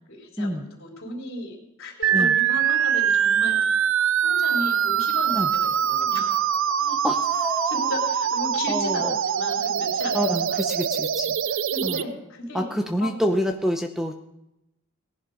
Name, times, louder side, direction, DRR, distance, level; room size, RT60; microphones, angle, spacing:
voice 1, 0.1-3.7 4.2-6.5 7.6-10.6 11.7-13.2, left 2 dB, 60° left, 0 dB, 4.1 m, -35 dB
sound 1, 2.0-12.0, right 8 dB, 60° right, 0.5 m, -23 dB
voice 2, 6.8-7.9 8.7-9.2 10.1-11.4 11.8-12.0 12.5-14.2, equal, ahead, 4 dB, 0.8 m, -27 dB
18.5 x 11.0 x 5.1 m, 0.89 s
head